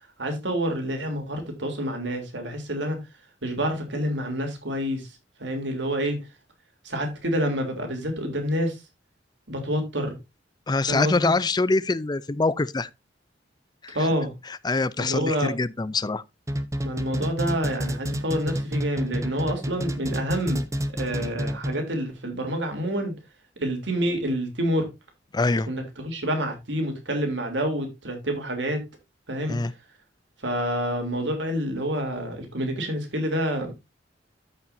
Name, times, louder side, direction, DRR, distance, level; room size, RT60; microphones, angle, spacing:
voice 1, 0.2-3.0 3.4-5.1 5.4-6.2 6.8-8.8 9.5-10.1 10.9-11.3 13.9-14.3 15.0-15.5 16.8-20.6 20.9-23.1 23.6-24.9 25.7-28.8 29.3-29.6 30.4-33.7, equal, 75° right, 3.2 m, -28 dB
voice 2, 10.7-12.9 13.8-14.0 14.6-16.2 25.3-25.7 29.5-29.7, left 3 dB, 25° left, 0.5 m, -24 dB
sound 1, 16.5-22.0, equal, 15° right, 0.9 m, -29 dB
13.5 x 5.8 x 2.6 m
head